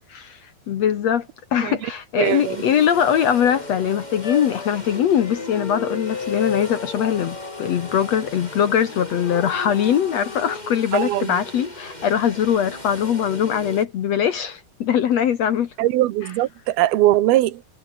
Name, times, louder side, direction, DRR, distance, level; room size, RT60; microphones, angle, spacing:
voice 1, 0.7-15.7, left 9 dB, 65° left, 1.8 m, -21 dB
sound 1, 2.2-13.9, left 1 dB, 10° left, 6.9 m, -37 dB
voice 2, 2.2-2.6 10.9-11.4 15.8-17.6, right 15 dB, 75° right, 2.9 m, -21 dB
sound 2, 4.2-8.6 9.2-10.6, left 5 dB, 35° left, 3.3 m, -33 dB
omnidirectional pair, 4.6 m